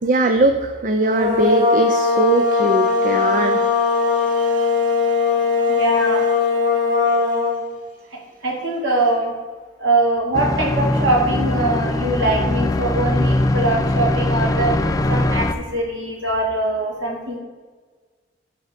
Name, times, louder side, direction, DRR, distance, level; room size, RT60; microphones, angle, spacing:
voice 1, 0.0-5.8 7.1-7.2, right 2 dB, 45° right, 6 dB, 0.5 m, -22 dB
sound 1, 1.0-7.6, left 4 dB, 20° right, 1.6 m, -19 dB
voice 2, 5.7-6.2 8.1-9.3 9.8-14.8 15.1-17.4, right 2 dB, 85° right, -1 dB, 2.2 m, -22 dB
sound 2, 10.3-15.5, left 1 dB, 20° left, 0.4 m, -21 dB
10.0 x 4.3 x 5.0 m, 1.4 s
head